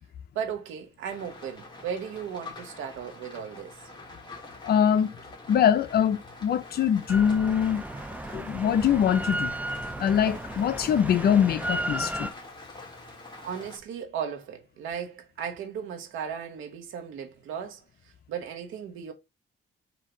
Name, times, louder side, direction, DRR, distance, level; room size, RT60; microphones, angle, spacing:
voice 1, 0.3-3.8 13.4-17.8 18.3-19.1, right 7 dB, 85° right, 1.1 m, -36 dB
Rain, 1.1-13.8, left 2 dB, 20° left, 1.6 m, -46 dB
voice 2, 4.6-5.1 5.5-7.8 8.3-9.5 10.0-12.3, left 8 dB, 55° left, 0.6 m, -23 dB
Drill, 7.1-12.3, right 1 dB, 10° right, 0.4 m, -34 dB
4.0 x 2.8 x 4.5 m
cardioid pair, 90°, 20 cm